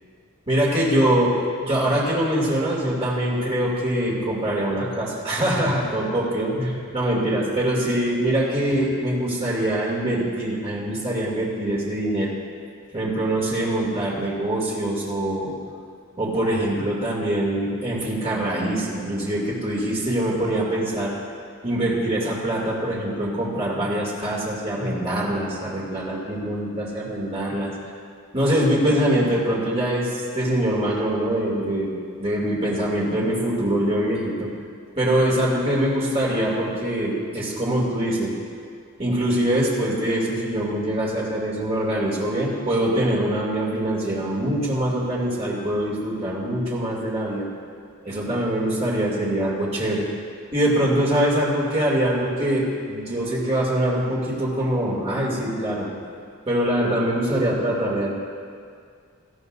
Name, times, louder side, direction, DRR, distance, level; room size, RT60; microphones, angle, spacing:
voice 1, 0.5-12.3 12.9-15.5 16.2-21.1 21.6-27.7 28.3-34.5 35.0-38.3 39.0-47.4 48.0-50.1 50.5-55.9 56.5-58.1, right 1 dB, 30° right, -5 dB, 2.7 m, -23 dB
18.5 x 13.0 x 2.7 m, 2.2 s
head